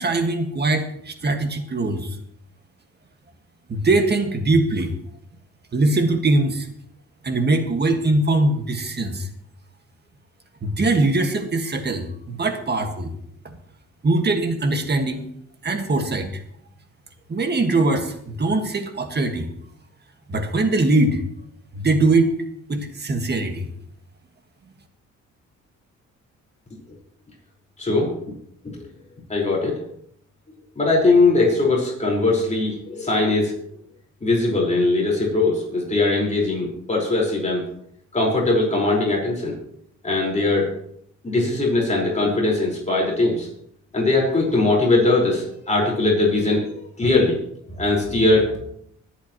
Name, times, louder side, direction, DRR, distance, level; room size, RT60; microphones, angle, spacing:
voice 1, 0.0-2.1 3.7-4.9 5.7-6.7 7.2-9.3 10.6-13.1 13.4-13.6 14.0-15.3 15.6-16.4 17.3-19.5 20.3-21.2 21.7-22.3 22.7-23.7, right 2 dB, 35° right, 6 dB, 1.8 m, -21 dB
voice 2, 27.8-28.1 28.6-28.9 29.3-29.8 30.7-33.5 34.2-37.6 38.1-39.5 40.0-40.7 41.2-43.5 43.9-46.7 47.0-47.4 47.7-48.5, left 2 dB, 25° left, -3 dB, 4.9 m, -20 dB
24.0 x 8.3 x 3.1 m, 0.70 s
cardioid pair, 90°, 30 cm